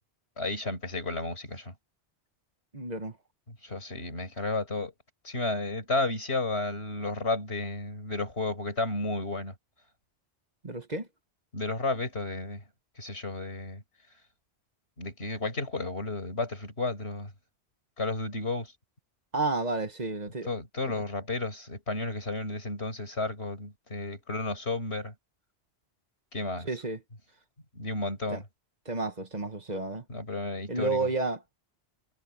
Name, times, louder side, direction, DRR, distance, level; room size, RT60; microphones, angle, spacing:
voice 1, 0.4-1.7 3.6-4.9 5.2-9.5 11.5-12.6 13.0-13.8 15.0-17.3 18.0-18.7 20.5-25.1 26.3-26.7 27.8-28.4 30.1-31.1, left 2 dB, 90° left, 5.4 m, -32 dB
voice 2, 2.7-3.2 10.6-11.1 19.3-20.5 26.6-27.0 28.3-28.4 28.8-30.0 30.7-31.4, right 3 dB, 45° right, 1.6 m, -31 dB
omnidirectional pair, 1.1 m